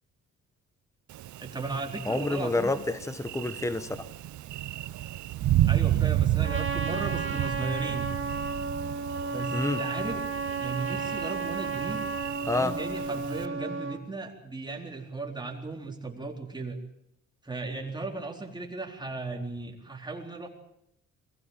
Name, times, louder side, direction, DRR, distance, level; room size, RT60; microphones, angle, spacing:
Thunder, 1.1-13.5, right 13 dB, 70° right, 0.9 m, -32 dB
voice 1, 1.4-2.7 5.7-8.1 9.3-10.2 10.6-12.0 12.4-16.8 17.4-20.5, right 3 dB, 15° right, 2 dB, 4.1 m, -36 dB
voice 2, 2.1-4.1 9.5-9.8 12.4-12.8, left 2 dB, 10° left, 12 dB, 1.3 m, -28 dB
Trumpet, 6.4-14.0, right 4 dB, 40° right, 2.8 m, -33 dB
22.0 x 15.5 x 9.1 m, 0.77 s
cardioid pair, 90°, 30 cm